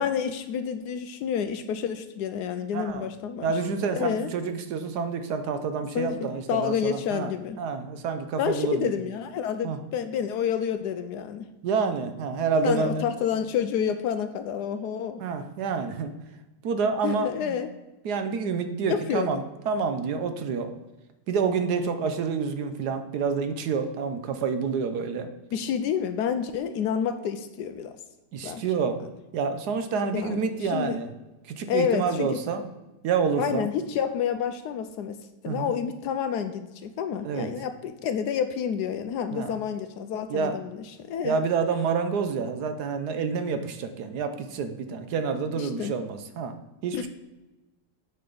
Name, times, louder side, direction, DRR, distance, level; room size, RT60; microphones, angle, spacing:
voice 1, 0.0-3.5 3.9-4.3 5.9-7.6 8.4-11.5 12.6-15.2 17.0-17.7 18.9-19.4 25.5-27.9 28.4-28.6 30.1-31.0 31.7-32.4 33.4-35.2 35.4-41.4 45.6-45.9 46.9-47.1, left 8 dB, 75° left, 9 dB, 1.0 m, -29 dB
voice 2, 2.7-3.1 3.4-7.3 7.6-8.9 9.6-9.8 11.6-13.0 15.2-16.1 16.6-17.6 18.0-20.7 21.3-25.3 28.3-29.0 29.3-31.1 31.4-32.6 33.0-33.7 35.5-35.7 37.2-37.5 39.3-39.5 40.3-40.5 41.2-46.6 46.8-47.1, right 5 dB, 70° right, 8 dB, 1.2 m, -28 dB
9.6 x 5.4 x 3.9 m, 1.1 s
omnidirectional pair, 1.9 m